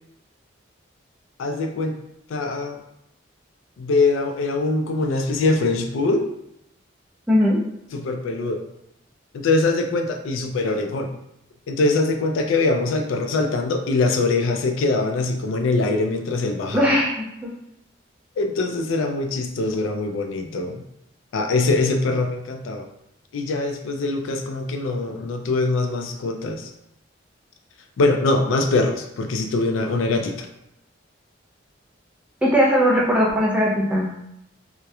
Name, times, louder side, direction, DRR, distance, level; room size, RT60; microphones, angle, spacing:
voice 1, 1.4-2.0 2.3-2.8 3.8-6.3 7.9-8.6 9.3-11.1 11.7-16.9 18.4-20.8 21.3-22.9 23.3-26.7 28.0-30.5, left 3 dB, 85° left, 5 dB, 0.3 m, -23 dB
voice 2, 7.3-7.6 16.7-17.5 32.4-34.1, equal, 5° right, -4 dB, 0.4 m, -19 dB
2.8 x 2.1 x 2.3 m, 0.80 s
head